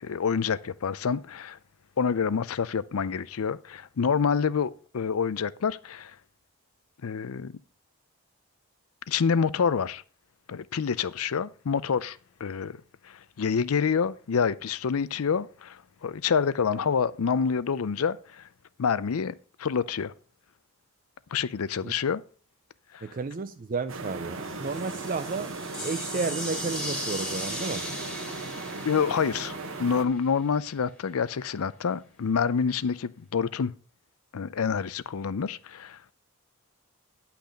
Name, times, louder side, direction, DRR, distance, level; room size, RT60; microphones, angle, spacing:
voice 1, 0.0-1.6 2.0-6.2 7.0-7.5 9.1-10.0 10.5-12.8 13.0-18.5 18.8-19.3 19.6-20.1 21.3-22.2 22.9-23.0 28.8-33.7 34.3-36.0, left 6 dB, 80° left, 0.5 m, -27 dB
voice 2, 23.0-25.5 25.8-27.9, right 4 dB, 40° right, 0.4 m, -32 dB
sound 1, 23.9-30.0, right 3 dB, 60° right, 1.1 m, -37 dB
sound 2, 24.4-30.3, left 1 dB, 5° left, 1.6 m, -38 dB
10.5 x 5.8 x 5.1 m
head